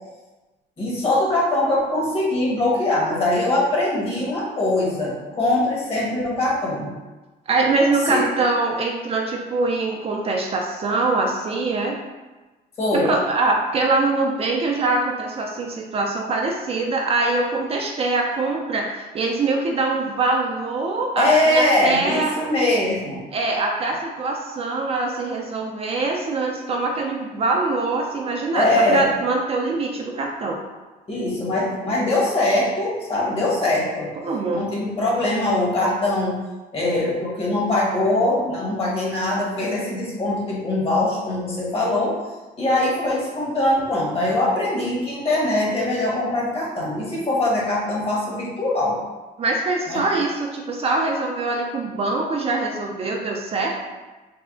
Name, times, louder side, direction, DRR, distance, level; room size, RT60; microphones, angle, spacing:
voice 1, 0.8-6.9 8.1-8.2 12.8-13.1 21.2-23.2 28.5-29.1 31.1-34.1 34.5-36.3 36.7-42.2 42.6-49.0 49.9-50.0, left 2 dB, 35° left, -4 dB, 1.1 m, -22 dB
voice 2, 7.5-12.0 12.9-22.3 23.3-30.6 34.2-34.6 49.4-53.8, right 3 dB, 35° right, 0 dB, 0.4 m, -23 dB
3.3 x 2.0 x 3.5 m, 1.2 s
cardioid pair, 110°, 17 cm